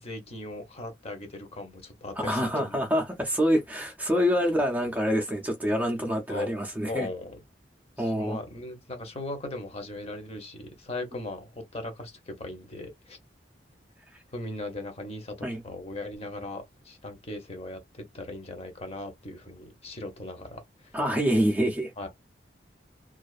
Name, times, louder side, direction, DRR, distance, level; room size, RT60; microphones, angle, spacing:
voice 1, 0.0-2.8 6.3-6.5 6.8-7.4 8.0-13.2 14.3-15.4 15.6-20.9 22.0-22.1, left 2 dB, 35° left, 0.8 m, -38 dB
voice 2, 2.2-7.1 8.0-8.4 15.4-15.6 20.9-21.9, equal, 10° right, 0.4 m, -26 dB
2.4 x 2.3 x 2.4 m
head